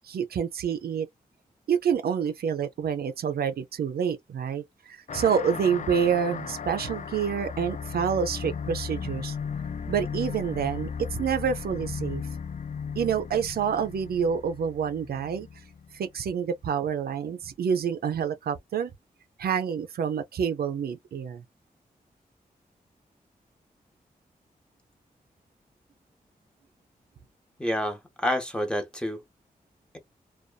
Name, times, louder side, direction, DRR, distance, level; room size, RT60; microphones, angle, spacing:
voice 1, 0.0-1.1 1.7-9.4 9.9-12.2 13.0-15.5 15.9-18.9 19.4-21.4, right 7 dB, 80° right, 0.4 m, -28 dB
sound 1, 5.1-16.1, left 6 dB, 50° left, 0.4 m, -36 dB
voice 2, 27.6-29.2, left 1 dB, 5° left, 1.0 m, -28 dB
2.5 x 2.2 x 2.2 m
cardioid pair, 50°, 16 cm